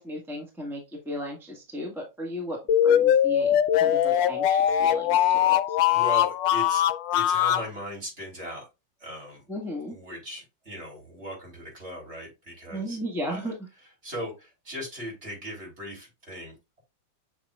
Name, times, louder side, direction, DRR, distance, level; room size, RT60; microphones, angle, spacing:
voice 1, 0.0-5.2 5.4-5.8 9.5-9.9 12.7-13.5, equal, ahead, -1 dB, 1.4 m, -35 dB
sound 1, 2.7-7.7, left 10 dB, 75° left, 1.3 m, -21 dB
voice 2, 5.9-6.8 7.1-8.7 9.0-9.4 9.9-13.0 13.3-13.4 14.0-16.5, equal, 35° right, -2 dB, 3.8 m, -38 dB
7.5 x 6.1 x 2.4 m, 0.24 s
omnidirectional pair, 2.0 m